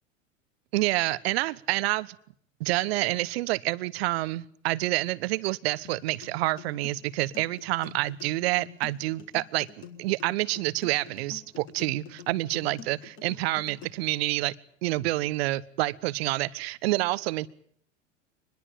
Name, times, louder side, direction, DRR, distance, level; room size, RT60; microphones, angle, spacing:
voice 1, 0.7-2.2 2.6-14.5 14.8-17.5, right 18 dB, 50° right, 18 dB, 1.1 m, -28 dB
sound 1, 5.8-13.8, left 8 dB, 30° left, 4.1 m, -47 dB
25.0 x 21.0 x 7.2 m, 0.62 s
figure-of-eight pair, 85°, 38 cm